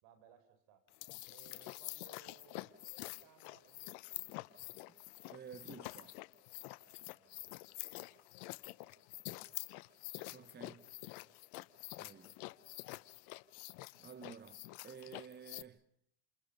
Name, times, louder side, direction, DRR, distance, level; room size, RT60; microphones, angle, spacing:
voice 1, 0.0-0.8 1.3-4.3 6.8-8.1 11.0-11.1, right 9 dB, 70° right, 4.7 m, -65 dB
sound 1, 0.9-15.6, left 21 dB, 80° left, 0.9 m, -48 dB
voice 2, 5.3-6.2 9.8-10.0 10.3-10.9 12.0-12.4 14.0-15.8, right 7 dB, 25° right, 1.0 m, -53 dB
29.5 x 28.0 x 5.5 m
supercardioid pair, 85°, 44 cm